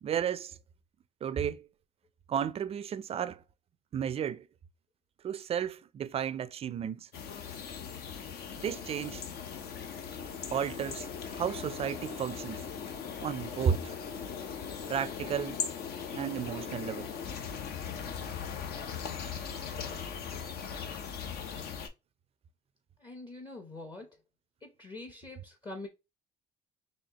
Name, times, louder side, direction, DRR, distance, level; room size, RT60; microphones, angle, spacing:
voice 1, 0.0-0.5 1.2-1.7 2.3-3.4 3.9-4.5 5.2-7.1 8.6-9.2 10.5-12.6 13.2-13.9 14.9-15.6 16.1-17.1, right 8 dB, 35° right, 0.4 m, -33 dB
sound 1, 7.1-21.9, left 7 dB, 70° left, 0.8 m, -39 dB
voice 2, 23.0-24.2 24.6-25.9, left 2 dB, 25° left, 0.7 m, -44 dB
4.2 x 2.8 x 2.8 m
cardioid pair, 110°, 17 cm